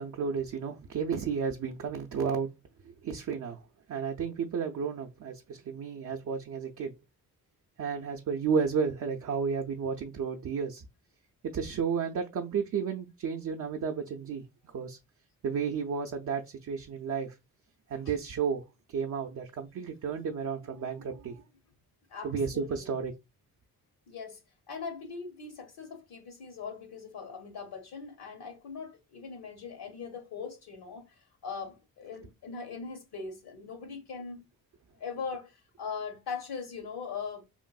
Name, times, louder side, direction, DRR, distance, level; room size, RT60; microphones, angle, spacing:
voice 1, 0.0-2.5 3.0-3.6 3.9-6.9 7.8-10.8 11.4-15.0 15.4-17.3 17.9-21.4 22.2-23.1, right 6 dB, 45° right, 0.5 m, -32 dB
voice 2, 22.1-22.9 24.1-24.4 24.7-34.5 35.0-37.4, left 5 dB, 65° left, 0.9 m, -40 dB
3.1 x 2.5 x 2.3 m
hypercardioid pair, 40°, 41 cm